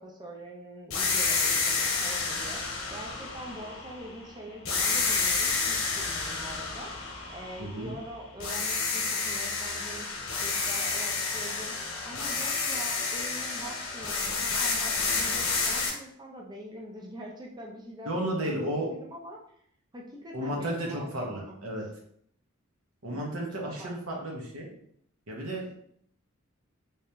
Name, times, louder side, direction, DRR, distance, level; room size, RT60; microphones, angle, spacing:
voice 1, 0.0-2.6 2.9-10.1 10.4-11.7 12.0-19.4 19.9-21.6 23.8-24.2, right 1 dB, 20° right, -1 dB, 0.5 m, -44 dB
sound 1, 0.9-4.2 4.7-8.0 8.4-15.9, left 4 dB, 65° left, 1.0 m, -30 dB
voice 2, 7.6-7.9 18.0-18.9 20.3-21.8 23.0-24.7 25.3-25.7, right 1 dB, 80° right, -1 dB, 1.1 m, -33 dB
3.4 x 2.9 x 3.3 m, 0.67 s
head